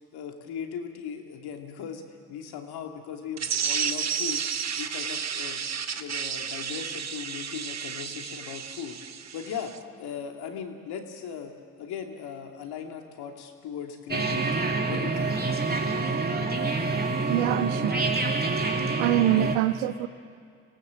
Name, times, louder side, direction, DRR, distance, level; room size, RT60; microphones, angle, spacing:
voice 1, 0.1-4.4 4.7-5.6 6.0-9.7 10.0-15.3, left 7 dB, 65° left, 3 dB, 2.7 m, -38 dB
sound 1, 3.4-9.8, right 7 dB, 40° right, 1.3 m, -32 dB
sound 2, 14.1-19.5, right 3 dB, 25° right, 2.8 m, -27 dB
voice 2, 17.3-18.1 19.0-20.1, right 13 dB, 80° right, 13 dB, 0.9 m, -24 dB
25.5 x 18.0 x 7.7 m, 2.1 s
hypercardioid pair, 55°, 41 cm